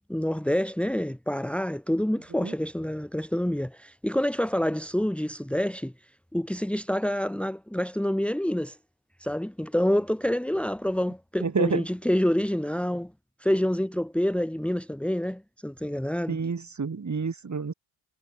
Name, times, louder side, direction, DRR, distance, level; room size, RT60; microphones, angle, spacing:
voice 1, 0.1-5.9 6.3-8.8 9.2-13.1 13.4-16.4, equal, ahead, 2.3 m, -27 dB
voice 2, 11.4-11.8 16.3-17.7, right 5 dB, 35° right, 6.3 m, -28 dB
wide cardioid pair, 145°, 50 cm